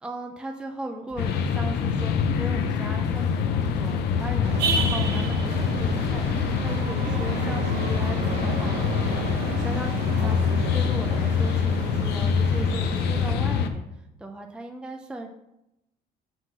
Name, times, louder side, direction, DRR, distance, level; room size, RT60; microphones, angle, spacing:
voice 1, 0.0-8.8 9.5-13.8 14.2-15.3, right 1 dB, 5° right, 3 dB, 0.5 m, -37 dB
sound 1, 1.1-6.7, equal, 45° right, 1.7 m, -45 dB
sound 2, 1.2-13.7, left 6 dB, 80° left, 0.6 m, -25 dB
sound 3, 4.4-13.3, right 4 dB, 90° right, 0.9 m, -32 dB
5.9 x 3.8 x 5.7 m, 0.88 s
cardioid pair, 110°, 17 cm